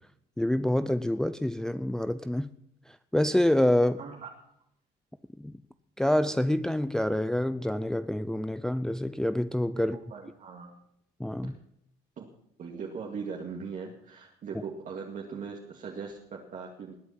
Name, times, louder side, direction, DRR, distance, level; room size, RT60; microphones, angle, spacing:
voice 1, 0.4-2.5 2.9-4.0 5.4-5.5 6.0-10.0 11.2-11.5, left 1 dB, 5° left, 0.5 m, -27 dB
voice 2, 4.0-4.3 9.8-10.7 12.2-12.3 12.6-17.1, right 5 dB, 50° right, 2.3 m, -40 dB
20.0 x 8.1 x 5.8 m
cardioid pair, 110°, 17 cm